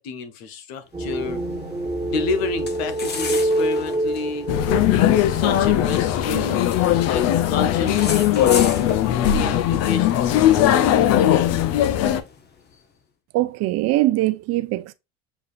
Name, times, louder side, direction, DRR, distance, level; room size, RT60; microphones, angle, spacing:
voice 1, 0.0-1.4 2.0-4.5 5.3-6.7 7.1-11.4, left 4 dB, 85° left, 0.8 m, -30 dB
sound 1, 0.9-12.7, left 5 dB, 35° left, 0.8 m, -37 dB
sound 2, 0.9-6.8, right 1 dB, 15° right, 1.3 m, -27 dB
sound 3, 4.5-12.2, left 11 dB, 55° left, 0.5 m, -19 dB
voice 2, 13.3-14.9, right 17 dB, 55° right, 0.5 m, -22 dB
7.0 x 2.4 x 2.5 m
hypercardioid pair, 85°, 31 cm